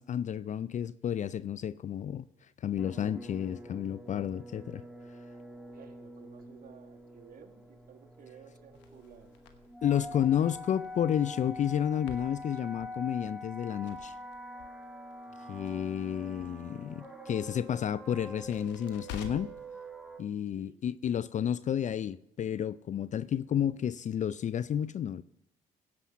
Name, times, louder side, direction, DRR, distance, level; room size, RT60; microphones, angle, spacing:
voice 1, 0.0-2.3 2.6-4.8 9.8-14.1 15.5-19.5 20.2-25.2, left 9 dB, 40° left, 0.4 m, -31 dB
sound 1, 2.8-20.2, left 1 dB, 5° right, 1.8 m, -45 dB
voice 2, 5.7-9.3 15.3-15.6 20.5-20.8, right 8 dB, 55° right, 1.4 m, -55 dB
Crackle, 8.7-19.7, left 8 dB, 80° left, 1.2 m, -51 dB
16.5 x 5.8 x 6.0 m
hypercardioid pair, 55°, 18 cm